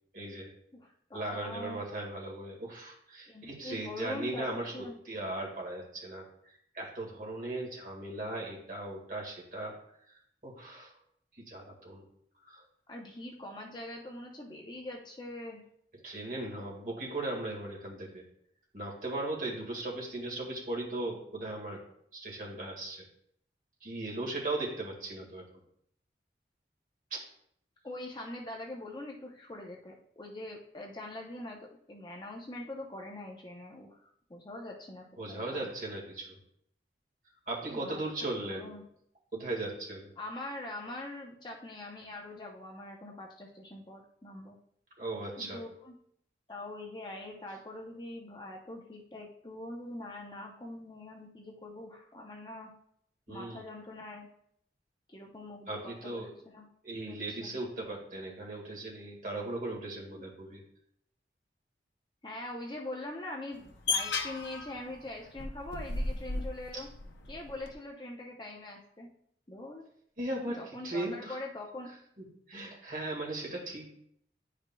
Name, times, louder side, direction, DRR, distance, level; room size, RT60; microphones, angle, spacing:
voice 1, 0.1-0.5 1.1-9.8 10.4-10.9 11.5-12.0 12.5-12.6 16.0-18.2 18.7-21.8 22.1-23.0 23.8-25.4 27.1-27.2 35.2-36.4 37.5-38.7 39.3-40.1 45.0-45.6 53.3-53.6 55.7-56.3 56.8-60.6 66.7-66.8 70.2-71.4 72.2-73.9, right 2 dB, 50° right, -1 dB, 1.9 m, -38 dB
voice 2, 0.7-1.8 3.3-4.9 12.9-15.6 27.8-35.7 37.6-38.0 38.4-38.8 40.2-44.6 45.4-45.9 46.5-52.7 53.3-54.3 55.1-56.7 56.9-57.5 60.1-60.2 62.2-66.9 67.3-69.1 69.5-69.9 70.4-71.9, left 1 dB, 25° left, 0 dB, 0.7 m, -43 dB
sound 1, 63.5-67.7, left 3 dB, 85° left, 0.7 m, -35 dB
10.0 x 5.0 x 2.3 m, 0.70 s
head